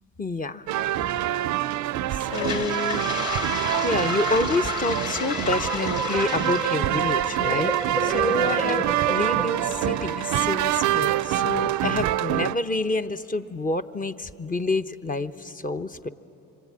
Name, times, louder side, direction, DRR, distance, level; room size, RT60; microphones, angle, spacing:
voice 1, 0.2-0.7 2.1-3.1 3.8-7.7 8.0-16.1, left 2 dB, 25° left, 8 dB, 0.8 m, -28 dB
sound 1, 0.7-12.6, right 13 dB, 75° right, 0.5 m, -26 dB
Toilet flush, 2.2-10.1, left 4 dB, 75° left, 4.0 m, -33 dB
sound 2, 4.7-11.5, right 1 dB, 5° right, 0.7 m, -33 dB
26.5 x 25.0 x 8.6 m, 3.0 s
cardioid pair, 90°, 30 cm